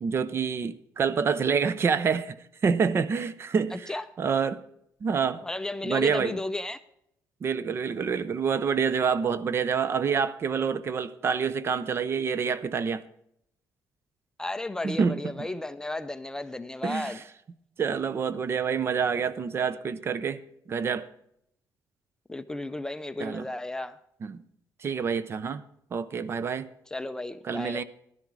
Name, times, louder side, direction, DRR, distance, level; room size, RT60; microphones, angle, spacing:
voice 1, 0.0-2.4 2.6-3.9 4.2-4.6 5.0-5.4 5.8-6.4 7.4-13.0 14.8-15.5 16.8-17.1 17.8-20.4 20.7-21.1 23.2-23.5 24.2-24.4 24.8-25.6 25.9-26.7 27.5-27.8, right 6 dB, 40° right, 0.6 m, -27 dB
voice 2, 3.7-4.1 5.4-6.8 14.4-17.2 22.3-24.0 26.9-27.8, left 2 dB, 10° left, 0.4 m, -34 dB
12.0 x 11.0 x 4.7 m
cardioid pair, 140°, 7 cm